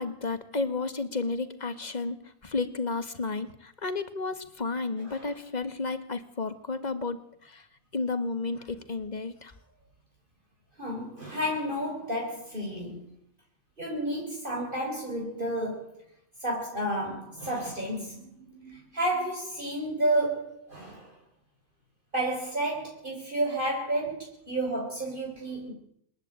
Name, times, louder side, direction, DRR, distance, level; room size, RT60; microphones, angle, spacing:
voice 1, 0.0-2.2 2.4-7.6 7.9-9.5, left 3 dB, 30° left, 11 dB, 1.7 m, -32 dB
voice 2, 5.0-5.4 10.8-13.0 13.8-16.0 16.4-21.1 22.1-25.7, right 1 dB, 40° right, -1 dB, 4.6 m, -31 dB
26.5 x 11.0 x 8.9 m, 0.69 s
omnidirectional pair, 1.4 m